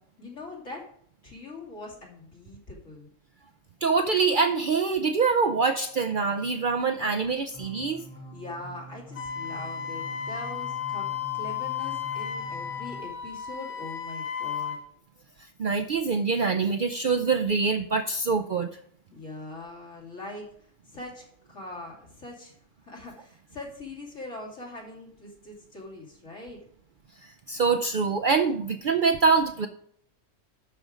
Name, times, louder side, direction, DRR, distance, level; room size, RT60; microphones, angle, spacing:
voice 1, 0.2-0.9 1.2-3.1 8.0-14.8 19.1-26.6, left 2 dB, 80° left, -1 dB, 3.2 m, -42 dB
voice 2, 3.8-8.0 15.6-18.8 27.5-29.7, right 4 dB, 55° right, 6 dB, 0.6 m, -24 dB
sound 1, 7.5-13.0, equal, 15° right, 2.6 m, -45 dB
Wind instrument woodwind instrument, 9.2-14.8, left 8 dB, 50° left, 1.0 m, -34 dB
12.0 x 5.1 x 4.9 m, 0.65 s
omnidirectional pair, 1.3 m